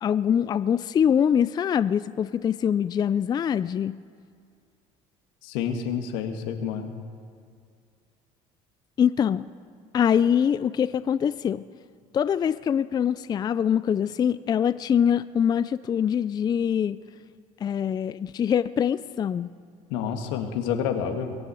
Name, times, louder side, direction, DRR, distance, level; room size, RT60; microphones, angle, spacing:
voice 1, 0.0-4.0 9.0-9.5 9.9-11.6 12.1-17.0 17.6-19.5, left 8 dB, 30° left, 15 dB, 0.4 m, -24 dB
voice 2, 5.4-6.9 19.9-21.4, left 7 dB, 85° left, 5 dB, 1.7 m, -29 dB
22.0 x 7.8 x 8.4 m, 2.3 s
supercardioid pair, 105°, 14 cm